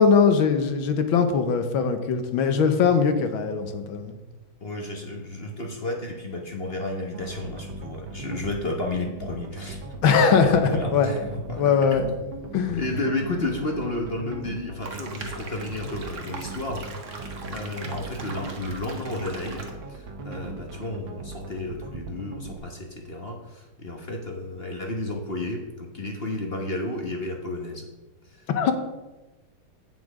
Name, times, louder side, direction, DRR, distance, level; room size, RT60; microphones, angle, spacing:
voice 1, 0.0-4.1 10.0-11.1 11.6-12.0 12.5-12.8 28.5-28.7, left 6 dB, 75° left, 8 dB, 1.7 m, -21 dB
voice 2, 4.6-9.8 10.1-12.2 12.7-16.8 17.5-27.9 28.2-28.7, left 2 dB, 40° left, 2 dB, 1.0 m, -32 dB
sound 1, 7.1-22.6, right 3 dB, 70° right, 1.8 m, -39 dB
sound 2, 14.8-19.7, right 3 dB, 45° right, 1.3 m, -40 dB
8.5 x 7.7 x 4.9 m, 1.1 s
omnidirectional pair, 2.2 m